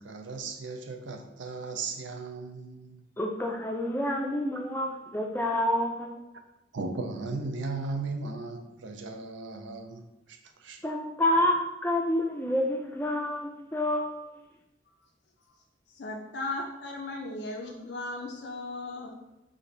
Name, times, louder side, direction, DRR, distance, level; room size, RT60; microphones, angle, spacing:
voice 1, 0.0-3.0 6.7-10.8, right 3 dB, 75° right, 5 dB, 0.5 m, -36 dB
voice 2, 3.2-6.1 10.8-14.1, left 1 dB, 10° left, 1 dB, 0.5 m, -28 dB
voice 3, 15.9-19.1, left 2 dB, 60° left, 0 dB, 0.5 m, -36 dB
5.0 x 2.6 x 3.9 m, 0.92 s
head